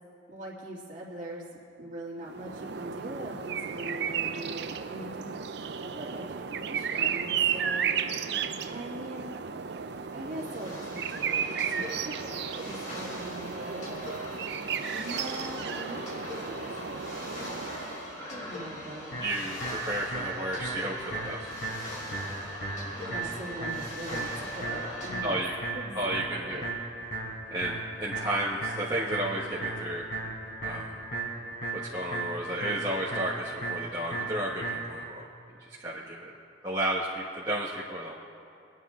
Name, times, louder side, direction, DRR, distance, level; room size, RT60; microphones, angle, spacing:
voice 1, 0.3-5.3 5.6-7.9 8.7-9.3 10.1-12.3 12.5-14.0 14.8-17.7 18.3-19.1 22.9-25.4 25.7-26.7, right 1 dB, 40° right, -4 dB, 2.6 m, -42 dB
sound 1, 2.2-18.2, right 7 dB, 60° right, 0.5 m, -33 dB
sound 2, 10.0-25.2, left 1 dB, 40° left, 3.4 m, -41 dB
sound 3, 19.1-35.1, right 3 dB, 65° left, 4.0 m, -36 dB
voice 2, 19.2-21.5 23.0-23.3 25.2-25.5 25.9-26.6 27.5-30.0 30.6-30.9 31.8-35.2 35.6-36.3 36.6-38.1, right 1 dB, 20° right, -8 dB, 1.3 m, -32 dB
24.0 x 9.6 x 3.7 m, 2.5 s
head